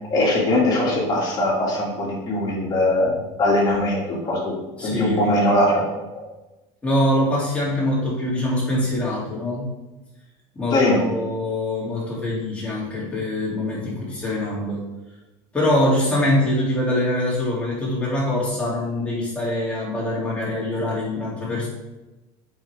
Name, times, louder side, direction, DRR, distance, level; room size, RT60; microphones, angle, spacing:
voice 1, 0.1-4.5 4.8-5.8 10.7-11.0, left 1 dB, 30° left, -4 dB, 2.2 m, -21 dB
voice 2, 4.8-5.3 6.8-9.7 10.5-10.8 11.1-14.8 15.5-21.7, left 1 dB, 10° left, -7 dB, 2.6 m, -23 dB
7.9 x 5.1 x 3.4 m, 1.1 s
cardioid pair, 150°, 15 cm